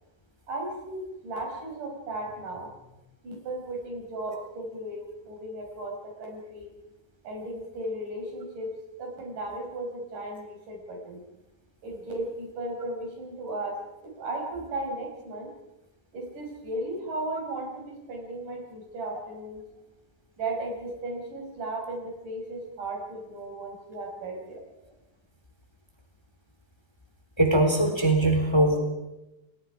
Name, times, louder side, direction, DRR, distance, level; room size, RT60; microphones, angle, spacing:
voice 1, 0.5-2.7 3.2-6.7 7.2-8.7 9.0-11.2 11.8-15.5 16.1-19.6 20.4-24.6, right 2 dB, 85° right, 1 dB, 6.8 m, -35 dB
voice 2, 27.4-28.8, right 1 dB, 10° left, 3 dB, 3.2 m, -21 dB
29.5 x 20.5 x 4.9 m, 0.96 s
omnidirectional pair, 3.5 m